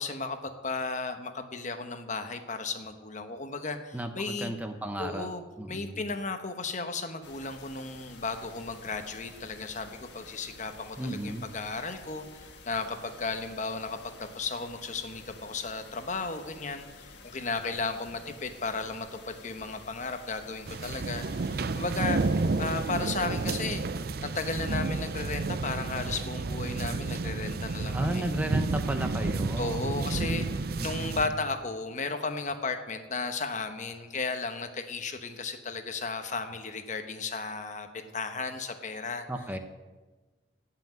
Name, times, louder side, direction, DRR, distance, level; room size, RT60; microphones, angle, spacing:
voice 1, 0.0-4.5 5.0-5.4 5.7-22.2 22.6-28.3 29.6-39.3, left 3 dB, 40° left, 7 dB, 1.0 m, -35 dB
voice 2, 3.9-5.3 5.6-6.0 11.0-11.5 27.9-29.9 30.8-31.2 39.3-39.6, right 1 dB, 10° right, 6 dB, 0.7 m, -34 dB
sound 1, 7.2-23.6, left 3 dB, 70° left, 1.6 m, -51 dB
sound 2, 20.7-31.3, right 3 dB, 55° right, 0.5 m, -31 dB
14.5 x 5.9 x 9.2 m, 1.3 s
head